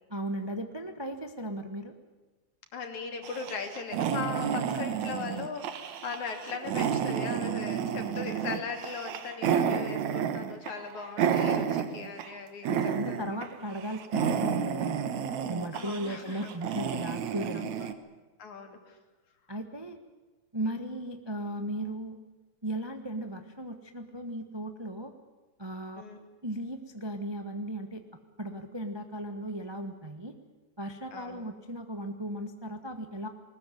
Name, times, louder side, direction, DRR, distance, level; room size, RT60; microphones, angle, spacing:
voice 1, 0.1-1.9 12.7-15.1 15.5-17.7 19.5-20.0 20.5-22.2 22.6-25.1 25.6-26.0 26.4-28.0 28.4-30.4 30.8-33.3, right 1 dB, 30° right, 6 dB, 0.4 m, -36 dB
voice 2, 2.7-13.2 15.7-16.5 18.4-19.0 26.0-26.2 31.1-31.4, left 5 dB, 75° left, 4 dB, 4.2 m, -39 dB
sound 1, 3.2-12.3 12.6-13.5 13.7-17.9, right 8 dB, 75° right, 2.6 m, -31 dB
21.0 x 20.0 x 9.4 m, 1.2 s
omnidirectional pair, 3.4 m